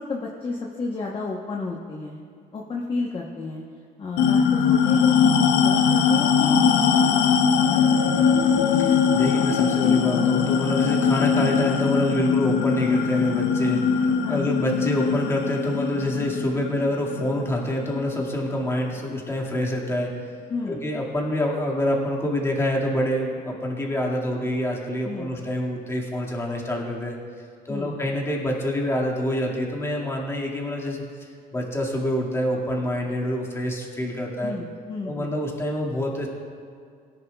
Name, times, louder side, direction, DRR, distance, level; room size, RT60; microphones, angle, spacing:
voice 1, 0.0-2.2 2.5-3.6 4.0-5.2 5.5-8.3 14.2-14.5 20.5-20.8 25.0-25.3 27.7-28.0 34.4-35.4, left 3 dB, 30° left, -1 dB, 1.0 m, -32 dB
sound 1, 4.2-19.0, left 6 dB, 85° left, 0.7 m, -21 dB
voice 2, 8.8-20.1 20.7-27.2 27.7-34.5 35.1-36.3, left 1 dB, 15° left, -2 dB, 2.0 m, -26 dB
18.0 x 10.5 x 2.3 m, 2.2 s
cardioid pair, 110°, 17 cm